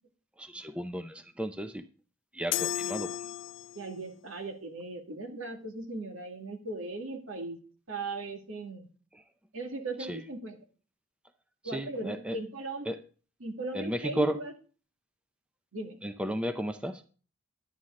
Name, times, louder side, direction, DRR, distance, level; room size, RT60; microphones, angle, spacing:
voice 1, 0.4-1.8 2.3-3.2 9.1-9.2 10.0-10.2 11.6-12.4 12.9-13.0 13.7-14.4 16.0-17.0, right 1 dB, 5° right, 9 dB, 0.5 m, -34 dB
sound 1, 2.5-4.0, left 12 dB, 60° left, 0.4 m, -34 dB
voice 2, 3.8-7.6 7.9-8.9 9.5-10.6 11.6-12.9 13.4-14.5 15.7-16.0, right 2 dB, 80° right, 4 dB, 2.0 m, -38 dB
11.0 x 9.0 x 3.7 m, 0.38 s
head